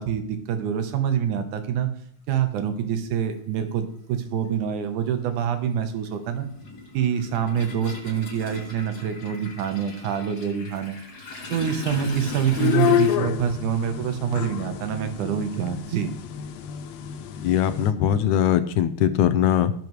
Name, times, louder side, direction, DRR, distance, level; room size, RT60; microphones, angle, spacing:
voice 1, 0.0-1.9 2.3-6.5 6.9-11.0 11.5-16.1, right 8 dB, 85° right, 7 dB, 2.5 m, -26 dB
Toilet flush, 2.7-2.8 4.0-4.2 4.5-13.2, left 3 dB, 45° left, 5.1 m, -39 dB
sound 1, 11.9-17.9, left 10 dB, 75° left, 1.8 m, -28 dB
voice 2, 17.4-19.7, left 10 dB, 90° left, 10 dB, 2.1 m, -21 dB
17.0 x 6.8 x 3.1 m, 0.64 s
omnidirectional pair, 3.4 m